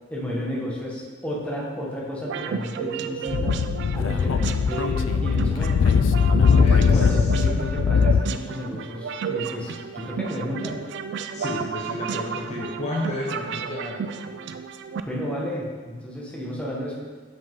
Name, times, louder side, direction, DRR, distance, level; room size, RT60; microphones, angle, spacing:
voice 1, 0.1-3.6 3.9-5.9 6.4-10.8 15.0-16.9, equal, 5° left, -5 dB, 1.1 m, -32 dB
sound 1, 2.2-15.0, right 6 dB, 65° right, 0.3 m, -33 dB
Speech / Wind, 3.3-8.2, left 6 dB, 70° left, 0.3 m, -20 dB
voice 2, 6.5-7.1 7.4-7.5 11.3-14.0, left 1 dB, 35° left, -3 dB, 0.7 m, -31 dB
5.7 x 5.2 x 3.7 m, 1.5 s
head